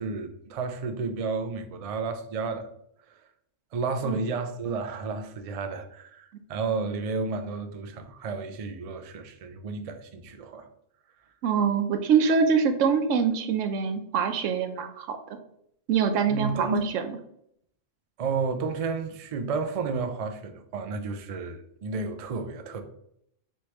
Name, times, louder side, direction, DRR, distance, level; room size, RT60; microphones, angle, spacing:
voice 1, 0.0-2.7 3.7-10.7 16.3-16.8 18.2-22.8, right 4 dB, 70° right, 0.3 m, -32 dB
voice 2, 11.4-15.4 15.9-17.0, right 6 dB, 90° right, 1.0 m, -24 dB
4.6 x 3.2 x 3.0 m
omnidirectional pair, 1.3 m